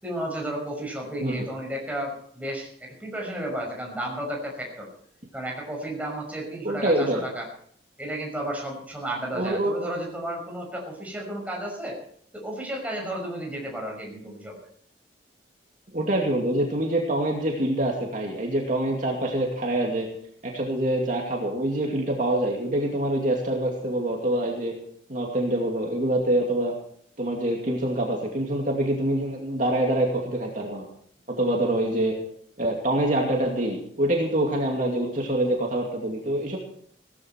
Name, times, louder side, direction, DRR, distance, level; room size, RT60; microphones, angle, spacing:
voice 1, 0.0-4.9 5.3-7.5 8.0-12.0 12.3-14.6, right 1 dB, 10° right, -1 dB, 5.8 m, -33 dB
voice 2, 6.6-7.2 9.3-9.9 15.9-20.1 20.4-24.7 25.1-26.7 27.2-30.9 31.3-32.2 32.6-36.6, right 1 dB, 45° right, 0 dB, 2.5 m, -25 dB
18.0 x 14.0 x 4.6 m, 0.63 s
head